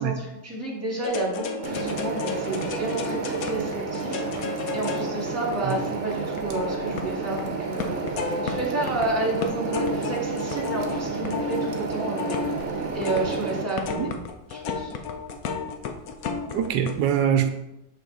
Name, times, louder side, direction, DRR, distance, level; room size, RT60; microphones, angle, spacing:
voice 1, 0.0-12.4 12.9-14.1 14.5-14.9, right 2 dB, 10° right, -3 dB, 1.7 m, -31 dB
sound 1, 1.0-7.4 7.8-9.1 9.4-16.9, left 5 dB, 65° left, 1.0 m, -33 dB
sound 2, 1.6-13.6, right 4 dB, 50° right, 1.0 m, -31 dB
voice 2, 16.5-17.5, right 9 dB, 85° right, 8 dB, 1.3 m, -23 dB
7.1 x 5.4 x 3.9 m, 0.90 s
omnidirectional pair, 2.0 m